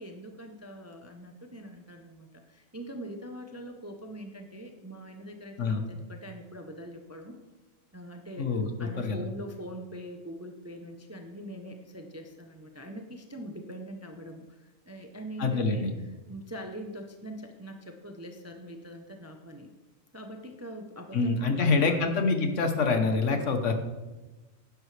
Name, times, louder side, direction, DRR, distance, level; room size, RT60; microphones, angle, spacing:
voice 1, 0.0-7.4 7.9-8.5 8.8-15.9 16.3-19.7 20.1-22.2, right 1 dB, 15° right, 4 dB, 0.6 m, -43 dB
voice 2, 8.4-9.3 15.4-16.0 21.1-23.7, left 4 dB, 65° left, 6 dB, 1.4 m, -26 dB
11.0 x 10.0 x 3.3 m, 1.1 s
omnidirectional pair, 1.4 m